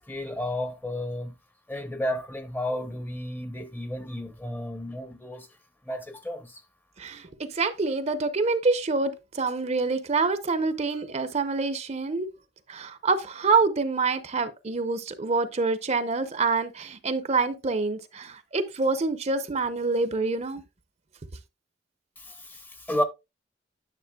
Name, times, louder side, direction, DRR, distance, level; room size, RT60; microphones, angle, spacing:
voice 1, 0.0-1.3 1.7-5.5 5.9-6.6 22.2-23.0, left 1 dB, 10° left, 0.7 m, -32 dB
voice 2, 7.0-12.3 12.7-20.6, right 4 dB, 35° right, 0.7 m, -26 dB
10.0 x 6.5 x 2.2 m
head